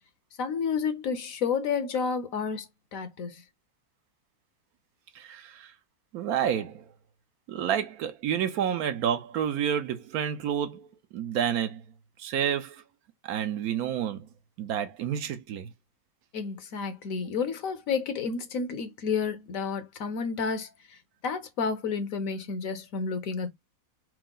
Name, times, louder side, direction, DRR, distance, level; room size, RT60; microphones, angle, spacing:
voice 1, 0.4-2.7 2.9-3.4 16.3-21.0 21.2-23.5, left 5 dB, 65° left, 1.1 m, -30 dB
voice 2, 5.1-5.7 6.1-6.9 7.5-11.8 12.2-12.8 13.2-14.3 14.6-15.7, right 9 dB, 75° right, 1.1 m, -29 dB
4.5 x 2.0 x 3.8 m
omnidirectional pair, 1.6 m